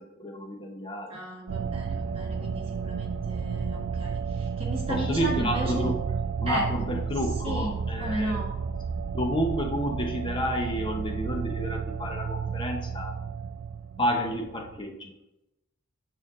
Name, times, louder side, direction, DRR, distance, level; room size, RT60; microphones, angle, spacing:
voice 1, 0.0-1.1 4.9-5.9 6.4-8.4 9.1-13.1 14.0-15.1, equal, 20° left, 2 dB, 0.8 m, -30 dB
voice 2, 1.1-5.9 6.5-6.6 7.4-8.5, equal, 25° right, -3 dB, 1.7 m, -34 dB
sound 1, 1.5-14.8, right 6 dB, 55° right, 0.3 m, -32 dB
7.0 x 6.4 x 3.8 m, 0.94 s
head